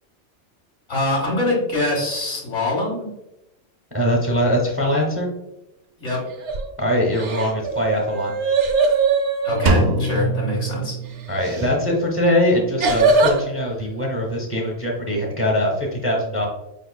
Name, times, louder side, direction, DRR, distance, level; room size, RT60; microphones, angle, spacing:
voice 1, 0.9-3.1 6.0-6.2 9.4-11.0, left 2 dB, 75° left, -3 dB, 1.9 m, -23 dB
voice 2, 3.9-5.3 6.8-8.3 11.3-16.5, left 1 dB, 15° right, -1 dB, 0.7 m, -22 dB
sound 1, 6.3-6.7 7.1-9.7 11.4-11.7 12.8-13.4, right 4 dB, 75° right, 0.9 m, -20 dB
Drum, 9.7-11.6, right 2 dB, 50° right, 0.6 m, -22 dB
5.3 x 3.5 x 2.3 m, 0.89 s
omnidirectional pair, 1.2 m